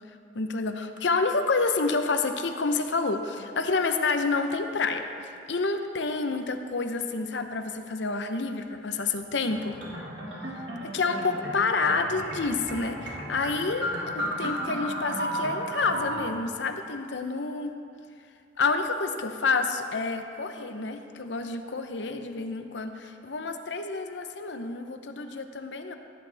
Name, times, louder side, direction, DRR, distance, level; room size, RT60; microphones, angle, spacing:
voice 1, 0.3-9.8 10.9-17.7 18.6-26.0, left 4 dB, 85° left, 7 dB, 0.8 m, -29 dB
sound 1, 9.5-16.2, equal, 80° right, 2.4 m, -34 dB
15.5 x 10.5 x 3.4 m, 2.4 s
head